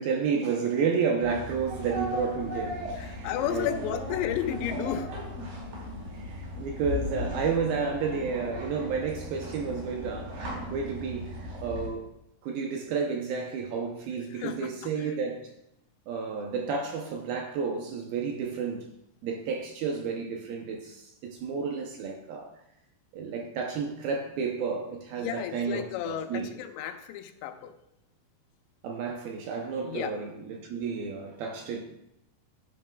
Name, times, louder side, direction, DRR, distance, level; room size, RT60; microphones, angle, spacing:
voice 1, 0.0-4.0 6.1-12.1 12.4-15.5 16.1-18.9 19.2-22.6 23.1-26.5 28.8-31.8, right 5 dB, 75° right, 2.3 m, -31 dB
sound 1, 1.2-11.9, left 1 dB, 55° right, 4.8 m, -37 dB
voice 2, 3.0-5.1 14.3-15.2 25.2-27.7 29.8-30.1, left 11 dB, 90° left, 3.0 m, -33 dB
11.0 x 11.0 x 2.3 m
omnidirectional pair, 4.9 m